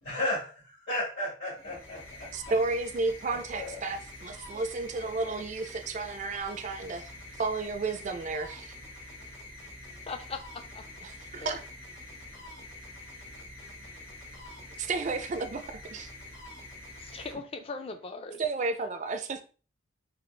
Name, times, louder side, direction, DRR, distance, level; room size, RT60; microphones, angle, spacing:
voice 1, 0.0-2.5 3.2-3.8, left 1 dB, 65° left, 1.8 m, -34 dB
sound 1, 1.5-18.0, left 1 dB, 85° left, 1.6 m, -46 dB
voice 2, 2.3-7.1 7.4-8.7 11.0-11.6 14.8-16.1 18.4-19.4, right 3 dB, 40° right, 0.4 m, -32 dB
voice 3, 10.1-10.8 11.4-11.6 17.0-18.4, left 4 dB, 30° left, 0.4 m, -39 dB
4.1 x 2.3 x 3.2 m
head